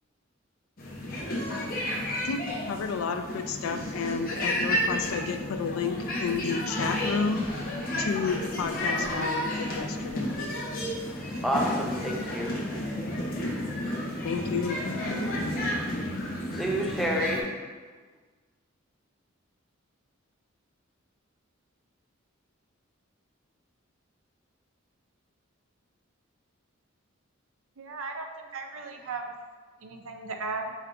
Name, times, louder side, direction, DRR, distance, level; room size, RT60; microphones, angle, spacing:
sound 1, 0.8-17.4, left 1 dB, 45° left, 0.7 m, -31 dB
voice 1, 2.2-7.5 8.0-10.3 14.2-14.8, left 5 dB, 80° left, 7 dB, 0.4 m, -31 dB
voice 2, 11.4-12.5 16.5-17.5, equal, ahead, -2 dB, 0.5 m, -28 dB
voice 3, 27.8-29.3 29.8-30.7, right 3 dB, 75° right, 4 dB, 0.5 m, -36 dB
4.5 x 3.4 x 2.5 m, 1.4 s
head